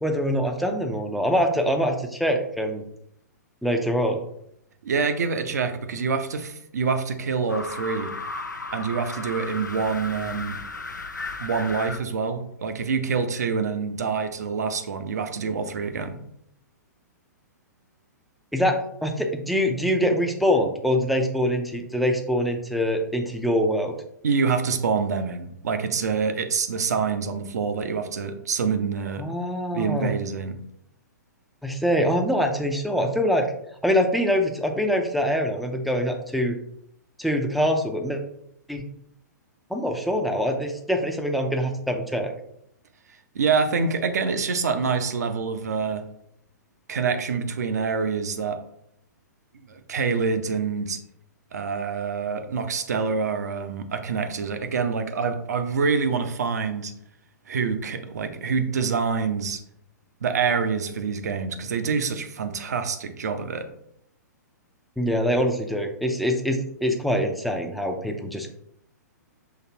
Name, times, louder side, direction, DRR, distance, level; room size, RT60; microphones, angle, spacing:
voice 1, 0.0-2.8 3.6-4.2 18.5-18.8 19.0-23.9 29.2-30.1 31.6-33.5 33.8-36.6 37.2-38.2 38.7-38.8 39.7-42.3 65.0-68.5, equal, ahead, 3 dB, 0.5 m, -24 dB
voice 2, 4.8-8.1 8.7-10.6 11.4-16.2 24.2-29.3 29.7-30.6 43.3-46.0 46.9-48.6 49.7-51.0 51.5-56.9 57.5-59.6 60.2-63.7, right 5 dB, 65° right, 8 dB, 0.7 m, -26 dB
sound 1, 7.5-12.0, left 3 dB, 85° left, 0.5 m, -35 dB
5.9 x 3.2 x 2.8 m, 0.74 s
figure-of-eight pair, 115°, 10 cm